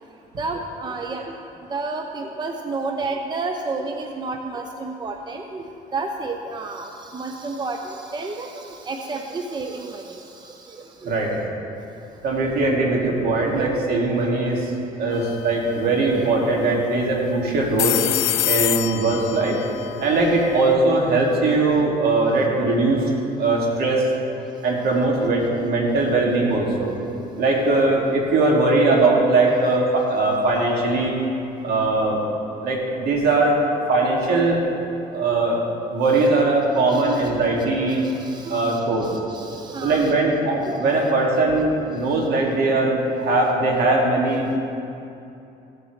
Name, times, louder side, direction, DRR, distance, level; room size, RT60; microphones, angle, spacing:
voice 1, 0.4-1.3 1.7-5.6 5.9-11.1 16.2-16.3 19.3-19.4 32.8-32.9 36.9-37.2 37.9-40.1 40.6-40.8, right 3 dB, 25° right, 4 dB, 0.7 m, -31 dB
voice 2, 11.0-11.5 12.2-14.7 15.0-18.0 18.5-19.6 20.0-23.0 23.4-24.0 24.6-26.9 27.4-31.2 31.6-32.2 32.6-33.6 33.9-34.6 35.1-35.6 35.9-38.1 38.5-39.1 39.8-44.6, right 2 dB, 70° right, -2 dB, 2.3 m, -20 dB
sound 1, 15.1-15.4 15.7-15.8 17.5-20.7, left 17 dB, 90° left, 0.4 m, -26 dB
15.5 x 8.3 x 3.2 m, 2.7 s
cardioid pair, 110°, 17 cm